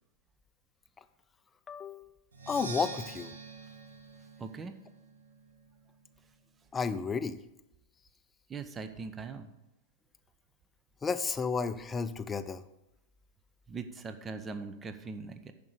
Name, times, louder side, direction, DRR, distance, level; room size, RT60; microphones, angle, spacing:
voice 1, 1.7-2.1 2.5-3.3 6.7-7.4 11.0-12.6, left 5 dB, 20° left, 12 dB, 0.5 m, -32 dB
Percussion, 2.3-6.1, right 4 dB, 70° right, 1.3 m, -46 dB
voice 2, 4.4-4.7 8.5-9.5 13.7-15.5, right 4 dB, 20° right, 10 dB, 0.8 m, -41 dB
10.5 x 5.2 x 6.6 m, 0.93 s
figure-of-eight pair, 90°, 0 cm